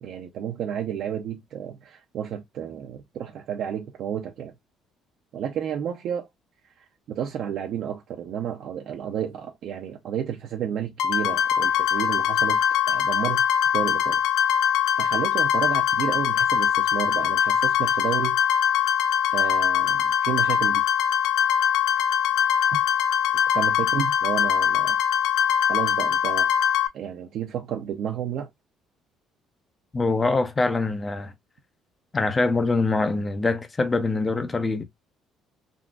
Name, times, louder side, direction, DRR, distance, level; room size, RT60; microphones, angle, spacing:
voice 1, 0.0-4.5 5.3-6.3 7.1-12.6 12.9-13.4 13.7-14.2 15.0-18.4 19.3-20.8 22.7-22.8 23.5-25.0 25.7-26.5 26.9-28.5, right 9 dB, 50° right, 0.5 m, -31 dB
sound 1, 11.0-26.9, left 9 dB, 70° left, 0.5 m, -22 dB
voice 2, 29.9-31.3 32.1-34.8, left 3 dB, 15° left, 0.4 m, -24 dB
3.6 x 2.4 x 2.3 m
cardioid pair, 175°, 0 cm